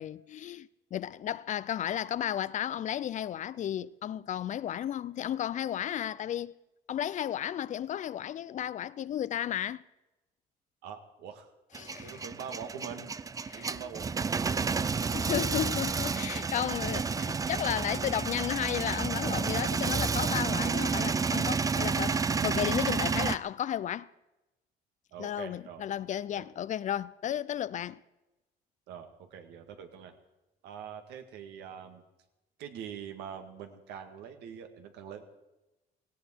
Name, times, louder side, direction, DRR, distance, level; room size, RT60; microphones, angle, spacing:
voice 1, 0.0-6.5 6.9-9.8 11.8-12.2 13.5-13.7 15.1-24.1 25.2-28.0, left 10 dB, 45° left, 0.5 m, -33 dB
voice 2, 10.8-11.5 12.0-13.1 13.5-15.0 25.1-25.9 26.4-26.5 28.9-30.1 30.6-32.0 32.6-35.2, right 8 dB, 85° right, 1.9 m, -44 dB
Male speech man speaking / Vehicle / Engine starting, 11.7-23.4, right 5 dB, 20° right, 0.5 m, -30 dB
17.5 x 16.5 x 4.5 m
cardioid pair, 110°, 17 cm